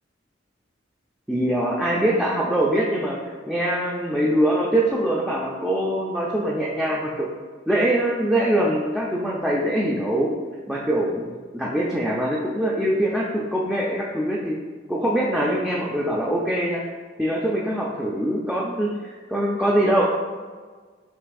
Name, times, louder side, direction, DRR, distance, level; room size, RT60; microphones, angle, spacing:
voice 1, 1.3-7.3 7.7-10.3 10.7-14.6 14.9-16.8 17.2-20.0, right 1 dB, 5° right, -5 dB, 0.4 m, -23 dB
5.6 x 3.3 x 2.3 m, 1.5 s
head